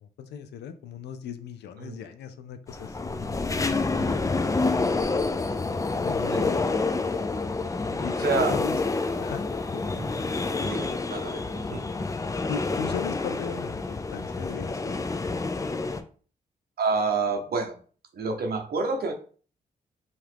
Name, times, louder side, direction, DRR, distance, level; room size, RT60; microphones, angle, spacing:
voice 1, 0.0-3.4 6.0-6.6 7.9-8.2 8.5-8.8 9.2-9.4 9.7-9.9 12.5-15.0, left 7 dB, 85° left, 9 dB, 0.4 m, -37 dB
sound 1, 2.7-16.0, left 3 dB, 20° left, 0.4 m, -28 dB
voice 2, 8.2-8.6 10.0-10.1 10.6-11.8 16.8-17.8 18.1-19.1, right 4 dB, 65° right, 4 dB, 0.7 m, -28 dB
2.8 x 2.4 x 3.3 m, 0.41 s
supercardioid pair, 55°, 17 cm